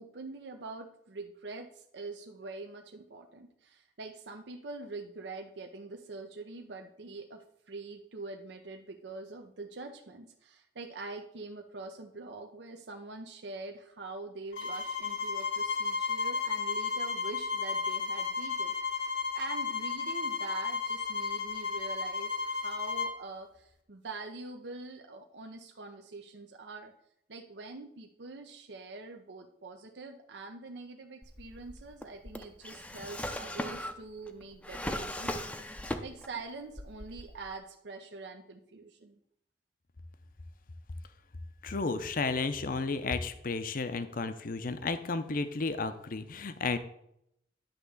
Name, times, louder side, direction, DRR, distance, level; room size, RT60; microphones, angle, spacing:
voice 1, 0.0-26.9 27.3-39.2, right 3 dB, 70° right, 4 dB, 0.7 m, -44 dB
sound 1, 14.5-23.2, left 5 dB, 85° left, 1.4 m, -33 dB
Drawer open or close, 31.2-36.4 36.7-37.5, left 1 dB, 5° left, 0.6 m, -38 dB
voice 2, 41.6-46.8, left 4 dB, 50° left, 10 dB, 0.7 m, -33 dB
10.5 x 3.6 x 7.0 m, 0.75 s
head